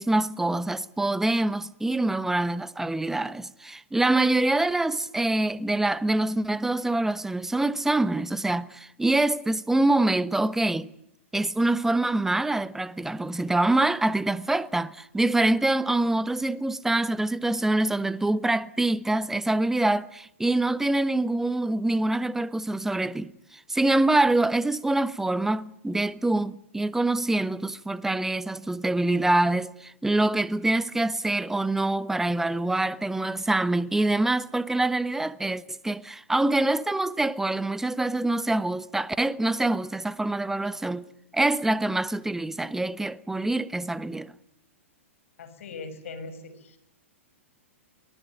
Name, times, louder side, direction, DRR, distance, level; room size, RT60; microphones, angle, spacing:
voice 1, 0.0-10.9 11.3-41.1 41.3-44.3, right 2 dB, 5° right, 1.0 m, -25 dB
voice 2, 45.4-46.8, left 3 dB, 70° left, 6.3 m, -40 dB
24.0 x 19.5 x 9.5 m
hypercardioid pair, 120°, 7 cm